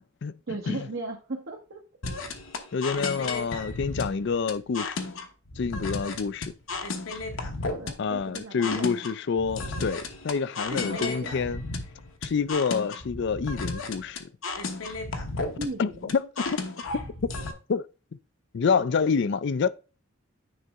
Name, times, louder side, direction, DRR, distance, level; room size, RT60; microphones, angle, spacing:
voice 1, 0.5-1.8 3.2-3.3 7.7-8.9 10.7-11.4 15.6-16.1, right 2 dB, 65° right, 1.1 m, -36 dB
sound 1, 2.0-17.5, left 3 dB, 75° left, 1.1 m, -34 dB
voice 2, 2.7-5.0 5.6-6.5 8.0-11.6 12.2-14.3 15.8-16.6 17.7-17.9 18.5-19.7, left 5 dB, 55° left, 0.4 m, -27 dB
9.4 x 4.0 x 3.5 m
head